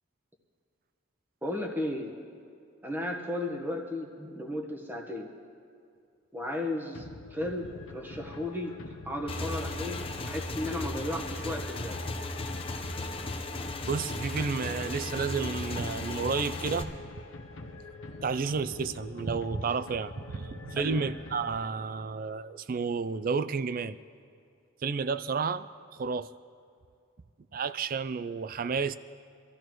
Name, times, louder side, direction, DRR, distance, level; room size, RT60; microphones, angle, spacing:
voice 1, 1.4-2.1 2.8-5.3 6.3-12.0 20.8-21.0, left 1 dB, 10° right, 1 dB, 1.2 m, -35 dB
sound 1, 6.9-22.0, left 3 dB, 65° left, 1.0 m, -45 dB
Motorcycle / Engine, 9.3-16.8, left 2 dB, 25° left, 0.8 m, -36 dB
voice 2, 13.9-16.9 18.2-24.0 24.8-25.7 26.0-26.3 27.5-29.0, right 5 dB, 40° right, 14 dB, 0.3 m, -31 dB
24.5 x 14.5 x 3.1 m, 2.4 s
head